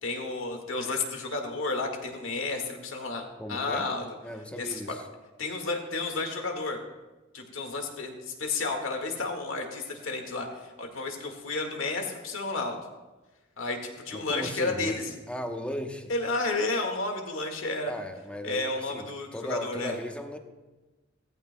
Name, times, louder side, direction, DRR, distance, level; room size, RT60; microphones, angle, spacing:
voice 1, 0.0-4.1 4.6-5.0 5.4-6.8 7.3-12.8 13.6-15.1 16.1-17.9 18.4-20.0, left 3 dB, 80° left, 3 dB, 1.8 m, -32 dB
voice 2, 3.4-3.9 4.2-5.0 14.1-16.1 17.9-20.4, equal, 5° left, 4 dB, 0.9 m, -37 dB
17.5 x 14.5 x 2.2 m, 1.2 s
head